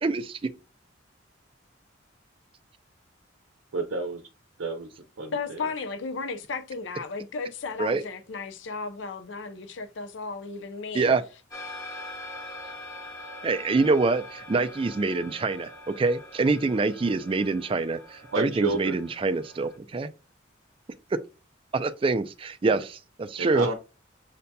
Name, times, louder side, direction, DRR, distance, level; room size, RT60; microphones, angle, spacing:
voice 1, 0.0-0.5 7.8-8.0 10.9-11.2 13.4-20.1 21.7-23.7, right 3 dB, 25° right, 0.3 m, -25 dB
voice 2, 3.7-4.2 4.6-4.9 5.2-5.3 18.3-19.0 22.7-22.8 23.4-23.8, right 3 dB, 85° right, 0.6 m, -29 dB
voice 3, 5.3-11.1, left 4 dB, 70° left, 0.5 m, -34 dB
sound 1, 11.5-19.8, left 1 dB, 20° left, 1.1 m, -43 dB
6.6 x 2.7 x 2.2 m
head